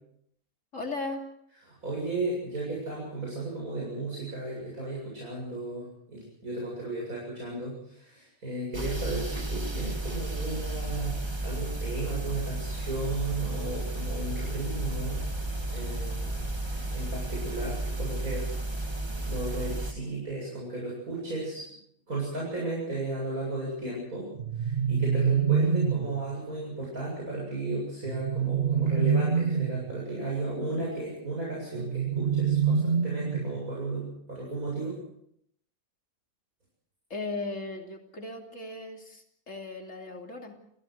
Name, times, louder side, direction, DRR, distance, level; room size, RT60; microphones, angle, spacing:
voice 1, 0.7-1.3 37.1-40.5, left 3 dB, 60° left, 2 dB, 3.4 m, -37 dB
voice 2, 1.8-15.2 15.7-18.8 19.2-21.6 22.1-24.3 24.5-35.0, right 2 dB, 80° right, -4 dB, 8.5 m, -34 dB
sound 1, 8.7-19.9, right 2 dB, 20° right, 1.9 m, -33 dB
sound 2, 24.4-26.2 28.0-29.9 31.8-33.7, right 6 dB, 45° right, 1.4 m, -26 dB
29.0 x 16.5 x 6.6 m, 0.73 s
omnidirectional pair, 1.5 m